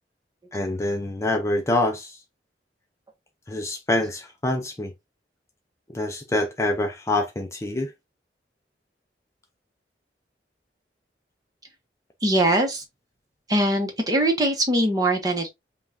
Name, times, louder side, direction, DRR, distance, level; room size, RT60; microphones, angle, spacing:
voice 1, 0.5-2.2 3.5-4.9 5.9-7.9, left 1 dB, 15° left, 0.5 m, -26 dB
voice 2, 12.2-12.8 13.5-15.5, right 1 dB, 20° right, 1.0 m, -22 dB
5.3 x 2.4 x 2.6 m
head